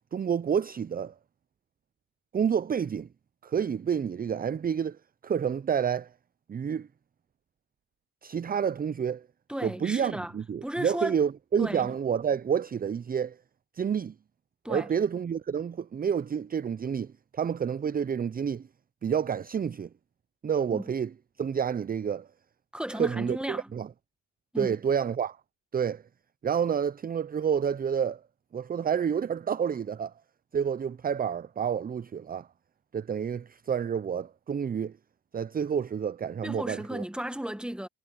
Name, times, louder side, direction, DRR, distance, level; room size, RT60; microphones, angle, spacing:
voice 1, 0.1-1.1 2.3-3.1 3.4-6.1 6.5-6.9 8.2-9.3 9.6-13.4 13.7-14.1 14.7-18.7 19.0-19.9 20.4-21.1 21.4-22.3 23.0-23.9 24.6-25.4 25.7-26.0 26.4-28.2 28.5-30.1 30.5-32.5 32.9-34.9 35.3-37.0, right 7 dB, 25° right, 0.5 m, -29 dB
voice 2, 9.5-10.4 10.6-11.2 11.6-12.0 14.6-14.9 20.7-20.9 22.7-23.7 24.5-24.8 36.4-37.9, right 1 dB, 5° right, 1.5 m, -34 dB
supercardioid pair, 75°, 36 cm